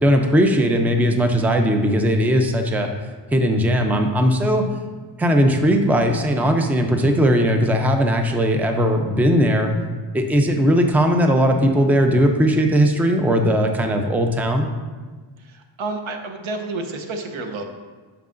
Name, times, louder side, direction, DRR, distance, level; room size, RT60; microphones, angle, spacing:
voice 1, 0.0-2.9 3.3-4.6 5.2-9.7 10.1-14.7, equal, 5° right, 4 dB, 0.4 m, -18 dB
voice 2, 15.4-17.6, right 3 dB, 85° right, 5 dB, 0.9 m, -30 dB
9.1 x 5.8 x 2.5 m, 1.4 s
wide cardioid pair, 145°, 46 cm